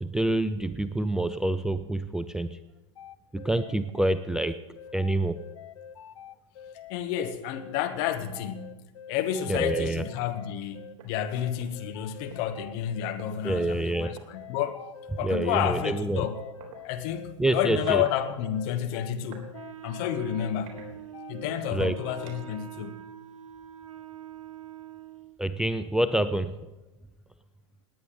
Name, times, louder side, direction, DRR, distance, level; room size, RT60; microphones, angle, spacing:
voice 1, 0.0-2.6 3.3-4.6 4.9-5.4 9.5-10.0 13.4-14.1 15.2-16.3 17.4-18.0 21.7-22.0 25.4-26.6, right 1 dB, 5° right, 11 dB, 0.4 m, -27 dB
sound 1, 3.0-21.8, left 9 dB, 70° left, 0.7 m, -46 dB
voice 2, 6.9-8.8 9.1-14.8 15.2-16.4 16.8-19.4 19.8-20.8 21.3-23.0, left 10 dB, 50° left, 9 dB, 1.4 m, -30 dB
sound 2, 8.2-8.4 8.8-9.0 9.4-9.7 10.6-10.7 11.0-12.4 13.2-13.3 14.1-14.3 15.3-15.4 16.6-16.8 17.5-18.2 18.5-19.5 19.9-20.1 20.6-21.4 21.8-22.6, right 7 dB, 45° right, 3.6 m, -50 dB
Wind instrument woodwind instrument, 19.5-25.4, right 10 dB, 85° right, 0.6 m, -44 dB
18.5 x 9.6 x 5.3 m, 1.1 s
hypercardioid pair, 100°, 16 cm